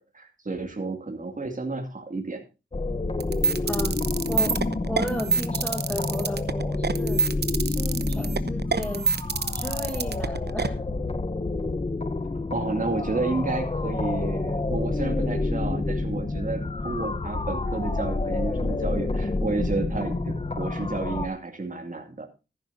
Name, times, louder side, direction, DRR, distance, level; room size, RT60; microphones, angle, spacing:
voice 1, 0.0-2.4 12.5-22.3, right 3 dB, 40° right, 3 dB, 2.5 m, -31 dB
sound 1, 2.7-21.3, left 2 dB, 30° left, 0.9 m, -28 dB
sound 2, 3.2-10.7, right 5 dB, 55° right, 0.9 m, -26 dB
voice 2, 4.9-7.2 7.6-9.1 9.5-10.8, equal, 5° left, 2 dB, 6.5 m, -34 dB
14.5 x 11.0 x 2.7 m, 0.29 s
wide cardioid pair, 75°, 20 cm